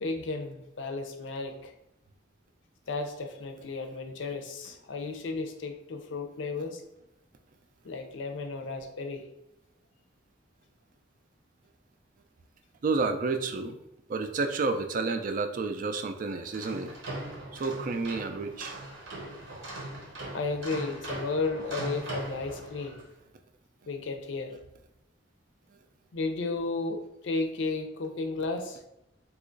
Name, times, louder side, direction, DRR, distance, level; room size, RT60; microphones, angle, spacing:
voice 1, 0.0-1.7 2.9-6.8 7.8-9.2 20.3-23.0 23.9-24.5 26.1-28.8, left 3 dB, 80° left, 5 dB, 0.5 m, -33 dB
voice 2, 12.8-13.8 14.1-16.9 17.5-18.7, right 3 dB, 45° right, 7 dB, 0.3 m, -30 dB
sound 1, 16.4-23.1, right 1 dB, 85° right, 1.0 m, -40 dB
2.8 x 2.4 x 3.8 m, 0.85 s
head